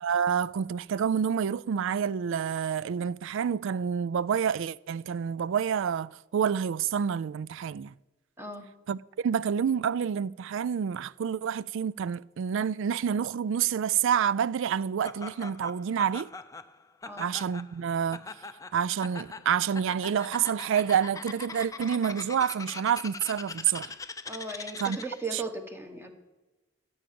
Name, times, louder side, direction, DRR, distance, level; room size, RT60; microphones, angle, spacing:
voice 1, 0.0-7.9 8.9-16.3 17.2-18.3 18.7-24.0 24.8-25.0 25.3-25.4, right 7 dB, 65° right, 0.4 m, -28 dB
voice 2, 8.4-8.7 17.0-17.3 24.3-26.1, right 2 dB, 10° right, 1.5 m, -37 dB
Laughter, 15.0-25.3, left 4 dB, 15° left, 0.5 m, -42 dB
13.0 x 8.7 x 6.9 m
head